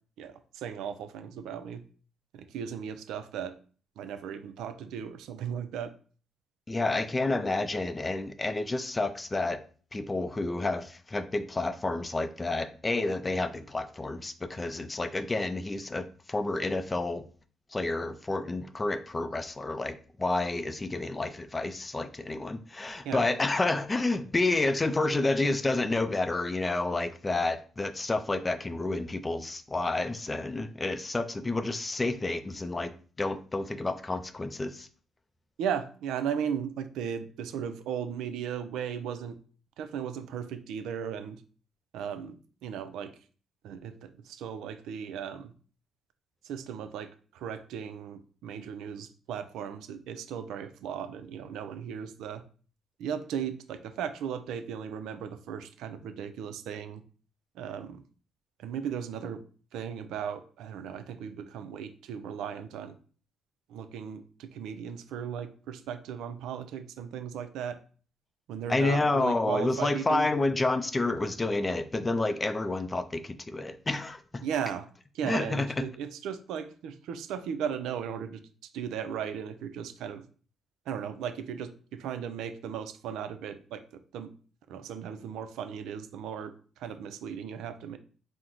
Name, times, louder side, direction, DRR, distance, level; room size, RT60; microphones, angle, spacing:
voice 1, 0.2-1.8 2.3-3.5 4.0-5.9 23.0-23.2 35.6-39.4 39.8-41.4 41.9-42.4 42.6-43.1 43.6-45.5 46.4-52.4 53.0-57.0 57.6-58.0 58.6-59.4 59.7-63.0 63.7-67.8 68.5-70.3 74.4-74.9 75.1-78.4 78.7-80.2 80.9-84.3 84.7-88.0, right 8 dB, 85° right, 0.4 m, -36 dB
voice 2, 6.7-9.6 9.9-17.2 17.7-32.9 33.2-34.9 68.7-74.4 75.2-75.7, left 2 dB, 20° left, 0.4 m, -29 dB
4.5 x 2.1 x 3.8 m
cardioid pair, 90°, 0 cm